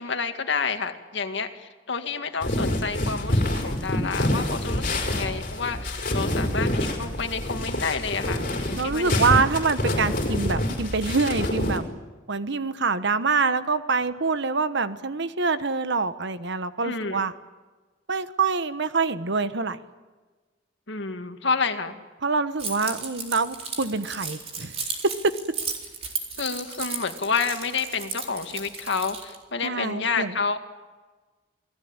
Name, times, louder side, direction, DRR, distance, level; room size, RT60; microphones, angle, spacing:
voice 1, 0.0-8.4 8.7-9.4 16.8-17.2 20.9-21.9 26.4-30.6, left 5 dB, 65° left, 7 dB, 2.1 m, -29 dB
sound 1, 2.4-11.8, left 1 dB, 45° left, 5.0 m, -26 dB
voice 2, 8.8-11.9 12.3-17.3 18.1-19.8 22.2-24.7 25.0-25.4 29.6-30.4, right 4 dB, 65° right, 12 dB, 1.2 m, -25 dB
Keys jangling, 22.6-29.4, right 5 dB, 35° right, 4.1 m, -34 dB
28.5 x 19.0 x 8.9 m, 1.3 s
head